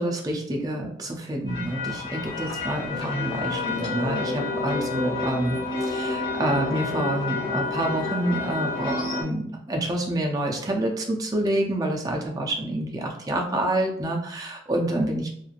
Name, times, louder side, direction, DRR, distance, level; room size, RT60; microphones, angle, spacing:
voice 1, 0.0-15.3, right 1 dB, 20° right, 1 dB, 0.4 m, -27 dB
sound 1, 1.5-9.2, left 3 dB, 30° left, 0.8 m, -29 dB
3.0 x 2.3 x 2.4 m, 0.70 s
head